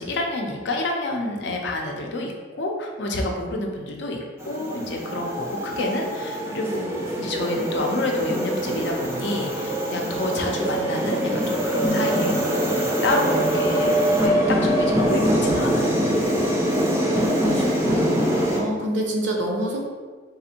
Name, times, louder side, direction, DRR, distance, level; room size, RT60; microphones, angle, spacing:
voice 1, 0.0-4.2 4.4-12.5 12.8-13.9 14.2-16.4, left 2 dB, 70° left, 1 dB, 0.6 m, -28 dB
sound 1, 4.4-18.6, equal, 15° right, 0.4 m, -23 dB
voice 2, 13.2-13.9 16.7-19.9, right 1 dB, 80° right, 0 dB, 0.7 m, -29 dB
3.9 x 2.5 x 2.8 m, 1.5 s
head